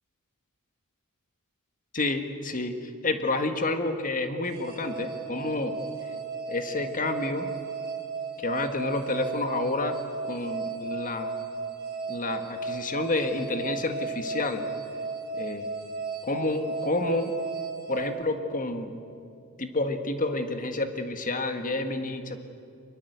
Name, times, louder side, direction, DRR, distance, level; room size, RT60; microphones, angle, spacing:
voice 1, 1.9-5.7 6.5-7.5 8.4-9.9 10.2-11.4 12.1-14.6 15.3-15.7 16.2-17.3 17.9-18.9 19.6-22.4, left 2 dB, 40° left, 7 dB, 1.7 m, -29 dB
sound 1, 4.5-18.8, right 4 dB, 45° right, 4.2 m, -35 dB
24.0 x 22.0 x 8.1 m, 2.5 s
head